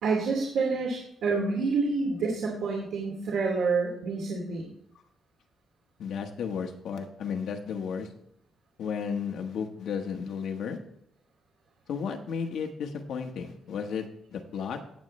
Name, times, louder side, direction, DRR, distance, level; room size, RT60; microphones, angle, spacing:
voice 1, 0.0-4.7, right 4 dB, 75° right, -2 dB, 2.5 m, -28 dB
voice 2, 6.0-8.1 8.8-10.8 11.9-14.8, left 6 dB, 65° left, 4 dB, 1.3 m, -33 dB
16.0 x 8.2 x 3.2 m, 0.74 s
cardioid pair, 175°, 0 cm